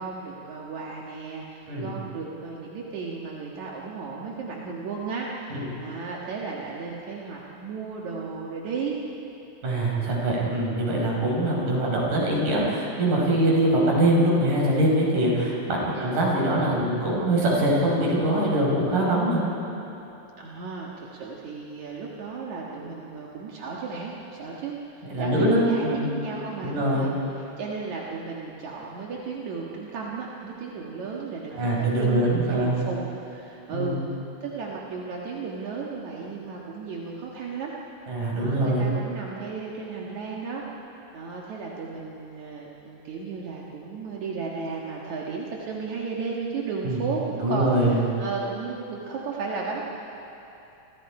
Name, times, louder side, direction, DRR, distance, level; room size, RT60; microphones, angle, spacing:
voice 1, 0.0-9.0 15.9-16.2 20.4-34.0 34.4-37.7 38.4-40.6 41.1-49.8, right 4 dB, 70° right, -3 dB, 3.0 m, -34 dB
voice 2, 9.6-19.4 25.0-26.1 26.6-27.1 31.6-32.8 33.7-34.0 38.1-38.9 46.8-47.0 47.4-48.0, right 1 dB, 85° right, -4 dB, 6.8 m, -23 dB
30.0 x 26.5 x 5.0 m, 3.0 s
omnidirectional pair, 3.5 m